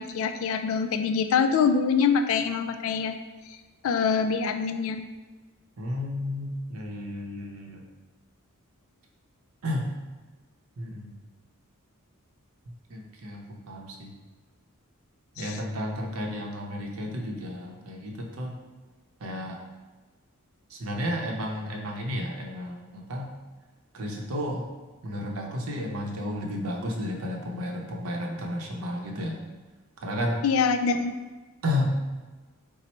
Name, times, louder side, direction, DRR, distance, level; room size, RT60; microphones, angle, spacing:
voice 1, 0.0-3.2 3.5-3.6 3.8-5.0 15.4-15.6 30.4-31.2, left 6 dB, 65° left, 8 dB, 0.3 m, -25 dB
voice 2, 5.8-7.8 9.6-9.9 10.8-11.2 12.9-14.1 15.4-18.6 19.2-19.6 20.7-23.3 23.9-24.7 25.0-29.4 30.0-30.4 31.6-31.9, left 1 dB, 70° right, 1 dB, 0.6 m, -32 dB
4.1 x 2.0 x 4.3 m, 1.3 s
head